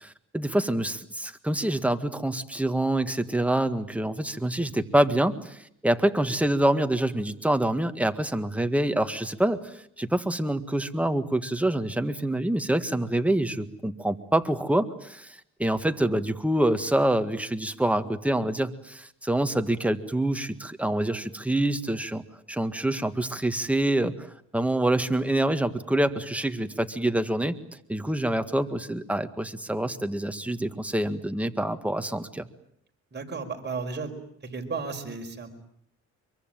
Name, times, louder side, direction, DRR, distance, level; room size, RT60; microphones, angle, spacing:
voice 1, 0.0-9.6 10.0-22.2 22.5-27.6 27.9-32.5, right 1 dB, 5° right, 8 dB, 1.8 m, -26 dB
voice 2, 33.1-34.2 34.4-35.6, right 4 dB, 35° right, 4 dB, 5.1 m, -34 dB
24.5 x 23.5 x 9.2 m, 0.70 s
cardioid pair, 90°, 30 cm